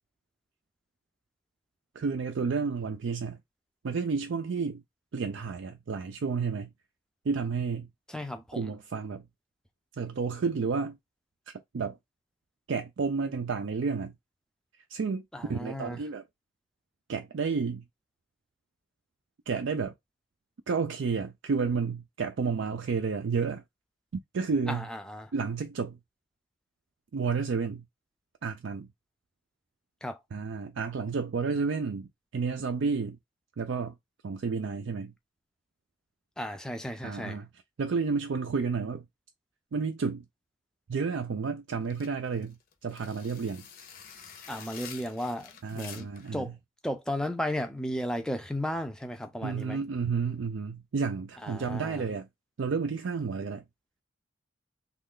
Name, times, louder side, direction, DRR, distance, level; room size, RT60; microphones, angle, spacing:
voice 1, 2.0-3.4 3.8-4.8 5.1-6.7 7.3-7.9 8.5-9.2 10.0-11.0 11.7-12.0 12.7-14.1 14.9-16.2 17.1-17.8 19.5-19.9 20.7-23.6 24.3-24.9 25.3-26.0 27.1-27.8 28.4-28.9 30.3-32.1 32.3-33.2 33.6-33.9 34.2-35.1 37.0-37.5 37.8-39.1 39.7-40.2 40.9-42.6 42.8-43.6 45.6-46.5 49.4-52.3 52.6-53.6, right 5 dB, 70° right, 0.4 m, -31 dB
voice 2, 8.1-8.6 15.3-16.0 24.7-25.3 30.0-30.2 36.4-37.4 44.5-46.1 46.3-46.5 46.8-49.8 51.4-52.0, equal, 5° left, 0.4 m, -34 dB
sound 1, 41.8-46.3, left 7 dB, 45° left, 0.7 m, -48 dB
3.2 x 2.3 x 3.7 m
head